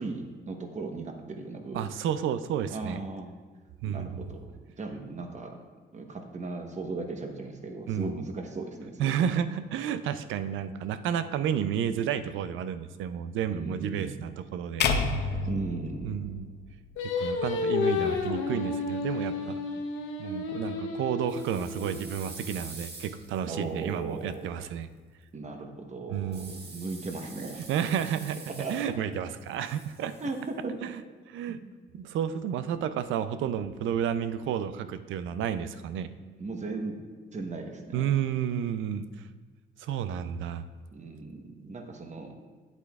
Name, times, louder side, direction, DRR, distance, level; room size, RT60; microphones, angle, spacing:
voice 1, 0.0-1.8 2.7-3.3 3.8-5.6 5.9-9.3 13.5-14.1 15.5-16.2 23.5-24.5 25.3-27.7 28.5-28.9 30.2-30.9 31.6-31.7 36.4-37.0 37.3-38.0 40.9-42.3, right 3 dB, 35° right, 4 dB, 1.0 m, -37 dB
voice 2, 1.7-3.0 3.8-4.3 7.9-8.2 9.0-14.9 15.1-15.4 16.0-16.5 17.0-19.6 20.2-24.9 26.1-26.6 27.7-30.1 30.8-31.0 31.3-31.6 31.9-36.1 37.9-39.3 39.8-40.7, right 9 dB, 80° right, 12 dB, 0.5 m, -31 dB
sound 1, 14.8-17.1, left 4 dB, 60° left, 0.6 m, -29 dB
Singing, 17.0-22.2, left 4 dB, 80° left, 0.9 m, -31 dB
sound 2, 21.3-24.3 26.3-29.1 29.4-30.5, right 3 dB, 55° right, 1.5 m, -46 dB
9.1 x 8.1 x 2.4 m, 1.4 s
cardioid pair, 90°, 20 cm